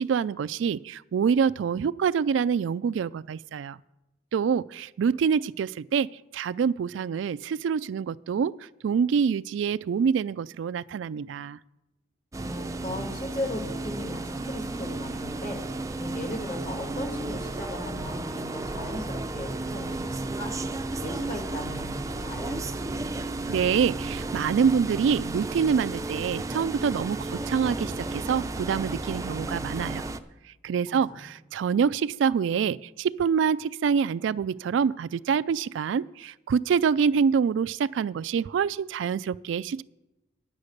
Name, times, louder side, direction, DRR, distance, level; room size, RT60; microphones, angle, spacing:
voice 1, 0.0-3.8 4.3-8.6 8.8-11.6 23.5-30.0 30.6-39.8, right 6 dB, 85° right, 16 dB, 0.3 m, -26 dB
sound 1, 12.3-30.2, right 2 dB, 20° right, 0.5 m, -33 dB
voice 2, 12.4-15.6 16.0-20.5 21.0-22.8 30.9-31.2, left 1 dB, 45° left, 3 dB, 2.3 m, -37 dB
9.8 x 8.4 x 6.5 m, 0.97 s
head